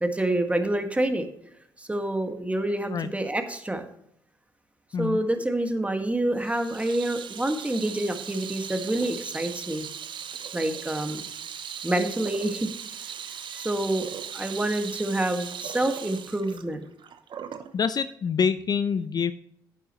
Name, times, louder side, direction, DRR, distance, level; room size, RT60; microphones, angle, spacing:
voice 1, 0.0-1.3 1.8-3.8 5.0-9.8 10.5-11.2 11.8-12.7 13.5-16.8, right 1 dB, 15° right, 6 dB, 1.7 m, -27 dB
Water tap faucet / Sink (filling or washing), 6.4-17.7, right 8 dB, 50° right, 0.8 m, -38 dB
voice 2, 17.7-19.3, left 6 dB, 40° left, 13 dB, 0.5 m, -26 dB
11.5 x 9.2 x 3.0 m, 0.73 s
hypercardioid pair, 45°, 10 cm